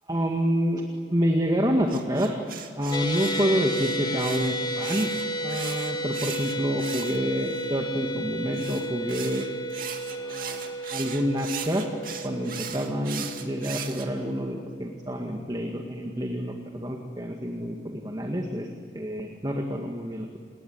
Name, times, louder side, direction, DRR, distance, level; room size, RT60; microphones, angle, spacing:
voice 1, 0.1-0.8 1.1-2.4 2.8-5.1 5.4-9.5 10.1-11.9 12.2-18.7 18.9-20.4, equal, 20° right, 2 dB, 2.0 m, -28 dB
sound 1, 1.9-7.7 8.5-14.1, right 8 dB, 50° right, 2.4 m, -38 dB
sound 2, 2.9-15.3, right 1 dB, 25° left, 3.0 m, -33 dB
28.5 x 21.0 x 9.6 m, 2.2 s
head